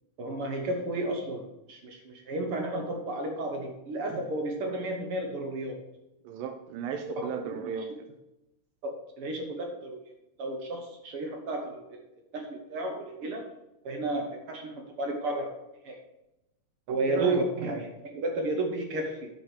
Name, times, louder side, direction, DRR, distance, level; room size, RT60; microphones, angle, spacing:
voice 1, 0.2-5.8 7.8-7.9 8.8-10.0 10.4-12.0 12.3-13.4 13.8-15.5 15.8-16.0 16.9-19.3, right 2 dB, 60° right, 3 dB, 1.5 m, -32 dB
voice 2, 6.2-8.1 16.9-17.4, right 7 dB, 90° right, 5 dB, 2.5 m, -35 dB
9.6 x 5.1 x 6.2 m, 0.92 s
omnidirectional pair, 3.8 m